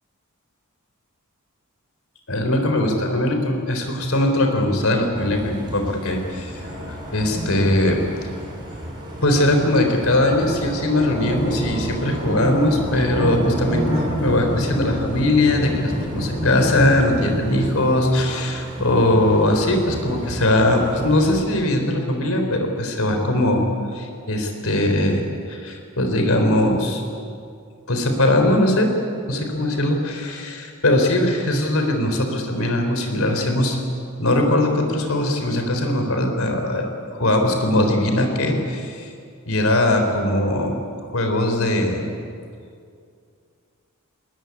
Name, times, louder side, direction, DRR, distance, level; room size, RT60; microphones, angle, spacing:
voice 1, 2.3-6.6 6.9-8.0 9.2-23.6 23.9-27.0 27.9-28.9 29.3-33.8 34.2-36.9 37.1-39.1 39.5-40.8 41.1-42.1, left 1 dB, 70° left, 4 dB, 4.0 m, -20 dB
sound 1, 5.1-21.4, equal, 20° right, 6.2 m, -29 dB
21.0 x 19.5 x 9.8 m, 2.4 s
head